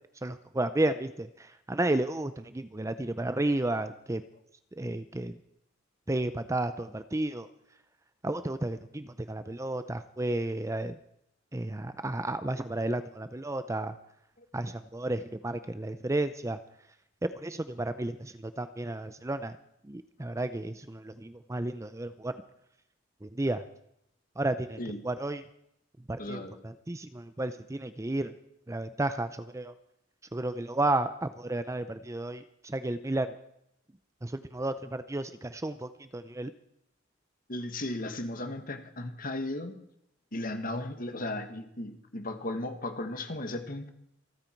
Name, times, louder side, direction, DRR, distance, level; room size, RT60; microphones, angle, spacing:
voice 1, 0.2-4.2 4.7-5.4 6.1-7.5 8.2-11.0 11.5-13.9 14.5-16.6 17.2-19.6 19.8-22.3 23.2-23.6 24.4-25.4 26.1-28.3 28.7-29.7 30.3-33.3 34.2-36.5, right 2 dB, 15° right, 11 dB, 0.6 m, -32 dB
voice 2, 26.2-26.6 37.5-39.8 40.3-43.9, left 1 dB, 45° left, 7 dB, 1.7 m, -36 dB
27.0 x 9.4 x 4.6 m, 0.75 s
head